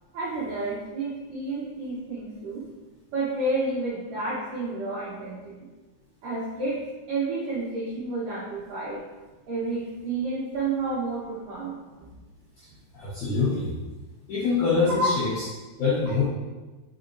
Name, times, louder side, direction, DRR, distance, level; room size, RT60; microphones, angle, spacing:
voice 1, 0.1-2.6 3.1-5.6 6.2-6.8 7.1-9.0 9.5-11.8 15.0-15.1, right 2 dB, 80° right, -8 dB, 1.9 m, -30 dB
voice 2, 12.9-13.7 14.3-15.4 15.8-16.2, left 4 dB, 85° left, -8 dB, 1.7 m, -24 dB
7.7 x 4.8 x 2.6 m, 1.2 s
omnidirectional pair, 5.4 m